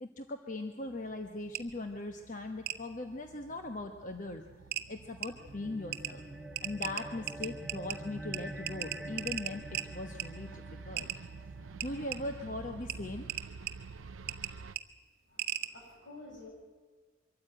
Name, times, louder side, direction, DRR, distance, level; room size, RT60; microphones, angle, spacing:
voice 1, 0.0-4.4 4.9-6.2 6.6-11.1 11.8-13.3, left 2 dB, 40° left, 5 dB, 1.1 m, -40 dB
sound 1, 0.8-14.8, right 4 dB, 85° right, 0.6 m, -49 dB
sound 2, 1.5-1.6 2.7-2.8 4.1-4.2 4.7-4.8 5.2-5.3 5.9-6.1 6.6-8.0 8.3-8.4 8.7-9.9 10.2-10.3 11.0-11.2 11.8-12.2 12.9-13.0 13.3-13.7 14.3-14.5 14.8-14.9 15.4-15.7, right 12 dB, 50° right, 1.0 m, -35 dB
sound 3, 5.3-12.0, right 1 dB, 5° right, 0.5 m, -47 dB
voice 2, 15.3-16.5, left 2 dB, 70° left, -1 dB, 7.5 m, -51 dB
23.5 x 14.0 x 8.8 m, 1.5 s
head